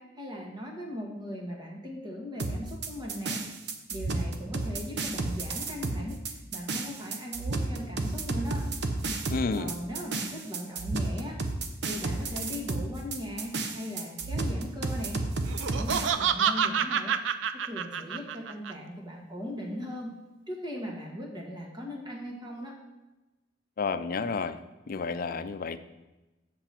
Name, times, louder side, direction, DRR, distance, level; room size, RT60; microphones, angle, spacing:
voice 1, 0.0-3.4 3.9-8.7 9.5-11.4 11.8-15.2 15.7-17.2 17.6-20.1 20.5-22.8, equal, 25° right, -1 dB, 1.6 m, -38 dB
sound 1, 2.4-16.1, right 2 dB, 65° right, 0.8 m, -32 dB
voice 2, 9.3-9.7 23.8-24.6 24.9-25.8, left 4 dB, 50° left, 11 dB, 0.5 m, -30 dB
Laughter, 15.5-18.7, right 7 dB, 90° right, 0.5 m, -28 dB
7.7 x 6.9 x 4.4 m, 1.1 s
head